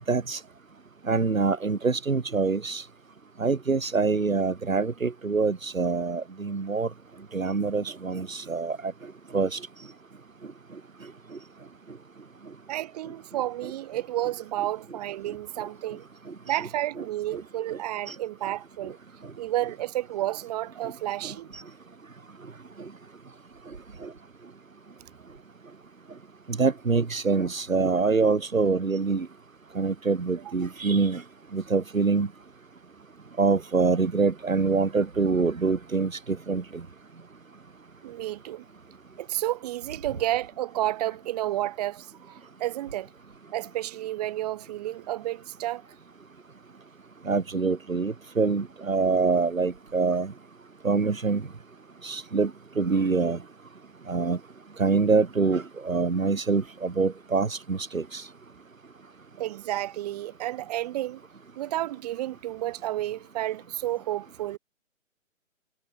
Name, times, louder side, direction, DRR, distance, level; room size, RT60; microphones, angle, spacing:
voice 1, 0.1-0.4 1.1-2.8 3.4-6.9 7.3-8.9 9.3-9.6 17.3-17.4 18.1-18.2 21.2-21.6 24.0-24.1 26.6-29.3 29.8-31.2 31.5-32.3 33.4-36.6 47.3-50.3 50.8-51.4 52.0-52.5 52.8-53.4 54.1-54.4 54.8-58.2, right 4 dB, 75° right, 1.9 m, -25 dB
voice 2, 12.7-16.1 16.5-19.0 19.4-21.5 38.0-38.6 39.2-43.1 43.5-45.8 59.4-61.2 61.6-64.6, right 14 dB, 30° right, 3.9 m, -31 dB
figure-of-eight pair, 140°, 41 cm